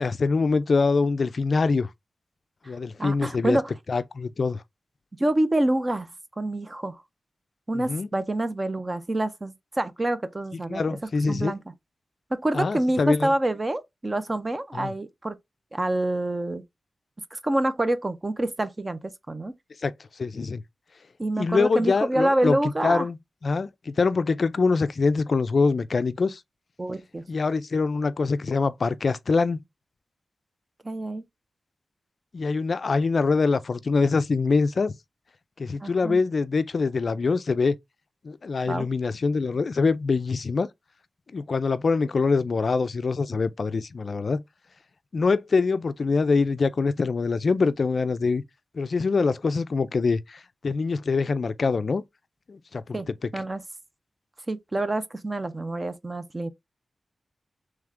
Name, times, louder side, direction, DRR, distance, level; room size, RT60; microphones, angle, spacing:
voice 1, 0.0-1.9 2.7-3.6 3.9-4.6 7.7-8.1 10.5-11.5 12.5-13.3 14.7-14.9 19.8-19.9 20.2-20.6 21.4-22.6 22.8-23.2 23.4-26.4 27.3-29.6 32.3-34.9 35.6-37.8 38.2-40.7 41.3-44.4 45.1-48.4 48.7-52.0 52.5-53.0, left 4 dB, 50° left, 0.3 m, -24 dB
voice 2, 3.0-3.7 5.2-6.1 6.4-7.0 7.7-11.0 11.3-11.6 12.3-15.4 15.7-16.6 17.3-19.5 21.2-23.1 26.8-27.2 30.8-31.2 35.8-36.2 38.7-38.9 52.9-53.1 53.3-53.6 54.5-56.5, right 1 dB, 20° right, 0.4 m, -27 dB
3.5 x 3.2 x 3.6 m
wide cardioid pair, 175°, 0 cm